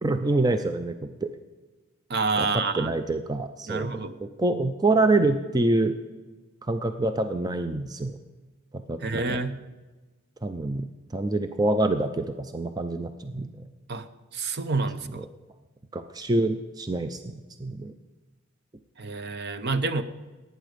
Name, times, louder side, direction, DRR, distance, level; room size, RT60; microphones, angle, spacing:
voice 1, 0.0-1.3 2.4-5.9 6.7-8.2 8.9-9.4 10.4-10.9 11.1-13.5 15.9-17.3 17.6-17.9, right 2 dB, 20° right, 8 dB, 0.5 m, -26 dB
voice 2, 2.1-2.9 3.7-4.1 9.0-9.6 13.9-14.1 14.3-15.2 19.0-20.0, right 3 dB, 50° right, 12 dB, 0.7 m, -28 dB
17.5 x 9.2 x 5.2 m, 1.2 s
head